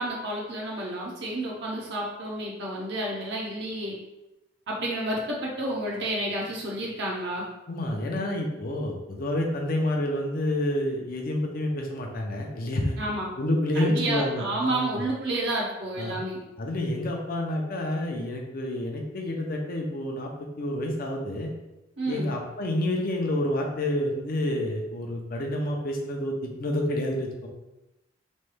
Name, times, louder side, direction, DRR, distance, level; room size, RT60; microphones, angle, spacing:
voice 1, 0.0-4.0 4.7-7.5 13.0-13.3 13.7-16.4 22.0-22.3, right 1 dB, 65° right, -3 dB, 0.6 m, -30 dB
voice 2, 7.7-13.0 13.4-15.1 16.0-16.2 16.6-21.5 22.1-27.5, left 1 dB, 50° left, 1 dB, 0.5 m, -29 dB
3.1 x 2.2 x 3.1 m, 0.99 s
head